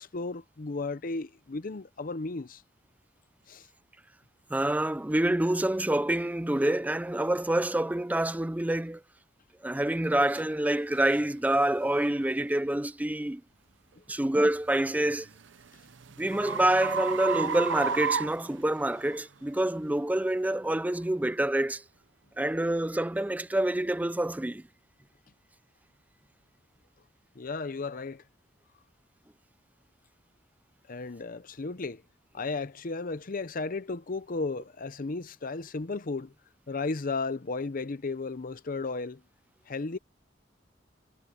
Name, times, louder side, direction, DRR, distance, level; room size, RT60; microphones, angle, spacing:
voice 1, 0.0-2.6 3.5-3.7 27.4-28.2 30.9-32.0 32.3-36.3 36.7-39.2 39.7-40.0, left 3 dB, 50° left, 0.7 m, -34 dB
voice 2, 4.5-9.0 9.6-13.4 14.1-15.3 16.2-21.8 22.4-24.6, right 1 dB, 10° right, 0.4 m, -27 dB
sound 1, 10.4-10.5 11.0-11.2 11.8-12.1 14.7-19.2, right 6 dB, 85° right, 0.8 m, -33 dB
head